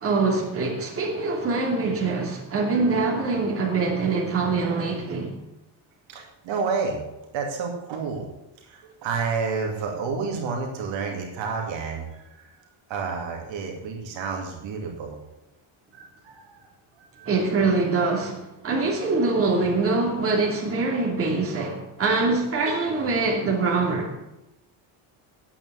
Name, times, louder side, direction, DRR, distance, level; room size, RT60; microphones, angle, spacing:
voice 1, 0.0-5.3 17.2-24.1, right 3 dB, 30° right, 2.7 m, -24 dB
voice 2, 6.1-7.0 7.3-8.3 8.6-12.5 12.9-15.2 15.9-16.7 17.0-17.3, right 5 dB, 65° right, 2.4 m, -30 dB
9.1 x 8.6 x 7.9 m
cardioid pair, 170°, 48 cm